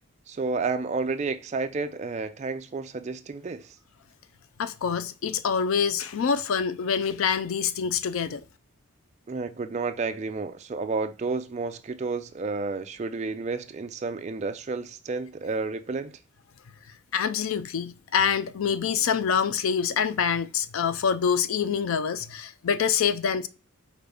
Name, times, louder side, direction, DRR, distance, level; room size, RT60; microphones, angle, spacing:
voice 1, 0.3-3.7 9.3-16.2, right 4 dB, 30° right, 0.3 m, -31 dB
voice 2, 4.6-8.4 17.1-23.5, left 7 dB, 70° left, 0.4 m, -26 dB
5.0 x 2.5 x 3.3 m
head